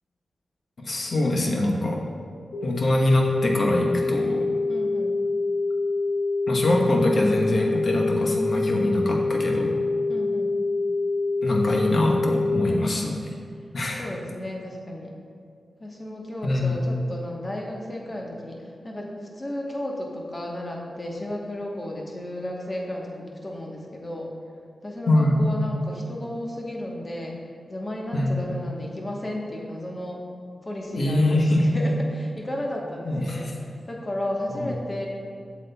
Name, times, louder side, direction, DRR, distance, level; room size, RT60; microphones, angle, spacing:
voice 1, 0.8-2.0 2.6-4.5 6.5-9.8 11.4-13.1 13.7-14.1 16.4-16.8 25.1-25.5 28.1-28.4 30.9-31.7 33.1-33.5 34.5-34.7, left 1 dB, 55° left, 0 dB, 1.0 m, -23 dB
sound 1, 2.5-12.5, left 3 dB, 80° left, 1.4 m, -26 dB
voice 2, 4.7-5.2 10.1-10.6 12.6-13.2 13.9-15.1 15.8-24.3 24.8-27.4 27.7-30.2 30.6-35.1, left 1 dB, 30° left, -1 dB, 1.1 m, -33 dB
8.0 x 7.2 x 2.3 m, 2.2 s
wide cardioid pair, 95°, 0 cm